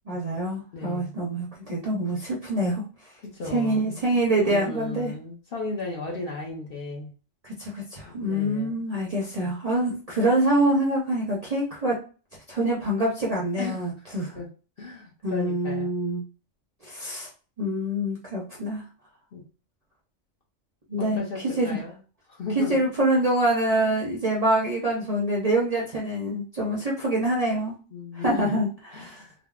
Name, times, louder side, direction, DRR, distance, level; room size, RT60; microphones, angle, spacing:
voice 1, 0.1-2.8 3.5-5.1 7.4-12.0 12.5-14.3 15.2-16.2 16.8-17.3 17.6-18.8 20.9-21.8 22.5-27.7 28.1-29.2, right 1 dB, 40° right, 0.6 m, -25 dB
voice 2, 0.7-1.2 3.2-7.1 8.0-8.8 13.6-13.9 14.3-14.5 14.8-15.9 19.3-19.4 21.0-22.0 22.3-22.8 27.9-28.7 28.9-29.3, left 3 dB, 50° left, 0.9 m, -35 dB
3.4 x 2.0 x 2.3 m
omnidirectional pair, 1.3 m